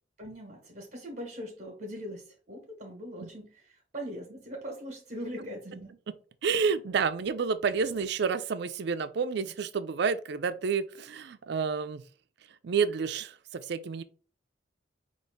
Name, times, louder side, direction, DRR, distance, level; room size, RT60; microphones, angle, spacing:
voice 1, 0.2-5.9, equal, 45° right, 1.2 m, -41 dB
voice 2, 6.4-12.1 12.6-14.0, right 5 dB, 65° right, 0.4 m, -29 dB
5.3 x 2.5 x 3.5 m
head